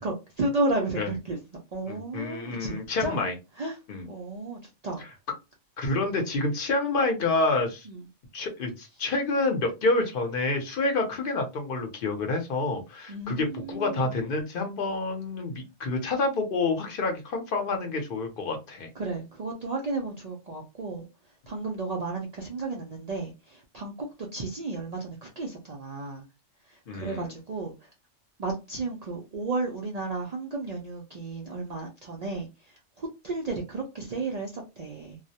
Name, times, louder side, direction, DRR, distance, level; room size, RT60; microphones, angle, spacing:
voice 1, 0.0-1.4 1.7-3.2 3.6-3.8 4.0-5.0 7.9-8.0 13.1-14.1 19.0-21.1 21.5-26.2 26.7-27.9 28.4-35.2, right 3 dB, 85° right, 0.3 m, -33 dB
voice 2, 1.9-3.3 3.9-4.1 5.8-7.9 8.3-18.9 26.9-27.3, left 3 dB, 55° left, 0.7 m, -28 dB
2.3 x 2.0 x 2.7 m
omnidirectional pair, 1.3 m